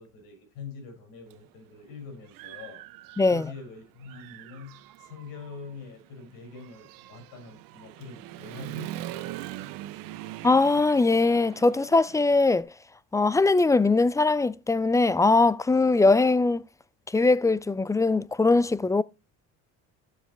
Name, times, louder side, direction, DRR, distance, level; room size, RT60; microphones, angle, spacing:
voice 1, 0.0-2.8 3.3-10.4, left 4 dB, 80° left, 6.2 m, -44 dB
Human voice / Motorcycle, 1.3-1.4 1.9-3.7 4.0-12.6, right 15 dB, 70° right, 0.9 m, -42 dB
voice 2, 3.2-3.5 10.4-12.7 13.1-16.6 17.1-19.0, left 3 dB, 10° left, 0.4 m, -21 dB
12.5 x 7.1 x 3.3 m
supercardioid pair, 85°, 35 cm